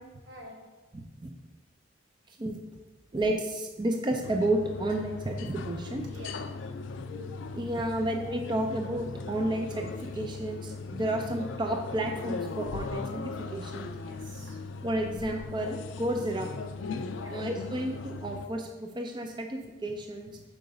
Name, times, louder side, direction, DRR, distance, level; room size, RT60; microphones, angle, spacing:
voice 1, 0.3-0.8 6.1-6.6 13.8-14.6 17.0-17.5, equal, 85° right, -1 dB, 1.2 m, -48 dB
voice 2, 0.9-1.3 2.3-2.6 3.1-6.1 7.5-13.9 14.8-16.5 17.3-20.4, right 1 dB, 25° right, 3 dB, 0.4 m, -31 dB
sound 1, 4.2-18.5, left 4 dB, 75° left, 0.3 m, -38 dB
4.7 x 3.8 x 5.2 m, 1.1 s
head